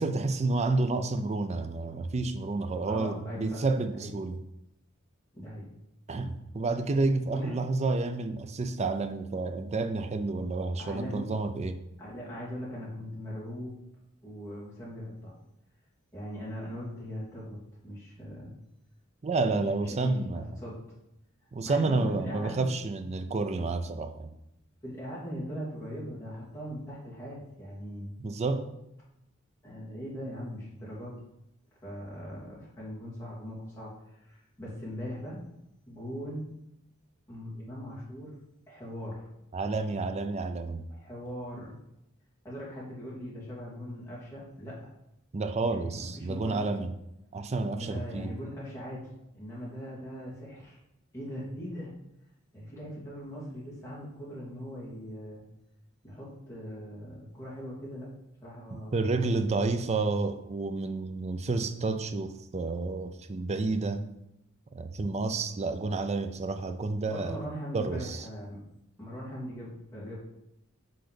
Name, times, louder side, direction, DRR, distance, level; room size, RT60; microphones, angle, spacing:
voice 1, 0.0-4.4 6.1-11.8 19.2-20.4 21.5-24.3 28.2-28.7 39.5-40.8 45.3-46.9 47.3-48.4 58.7-64.0 64.7-67.4 67.7-68.3, right 3 dB, 30° right, 9 dB, 0.5 m, -30 dB
voice 2, 2.9-3.6 4.0-4.1 5.3-5.7 7.3-7.5 10.8-11.3 12.0-13.8 14.2-15.3 16.1-18.5 19.5-20.9 21.6-22.7 24.8-28.2 29.6-31.2 31.8-35.5 35.9-36.6 37.3-38.3 38.7-39.3 40.9-41.8 42.4-44.8 45.6-46.7 47.8-50.8 51.1-51.9 52.5-55.4 56.0-58.1 58.4-59.0 67.1-68.7 69.0-70.1, equal, 15° left, -7 dB, 2.4 m, -40 dB
5.8 x 3.8 x 5.1 m, 0.83 s
head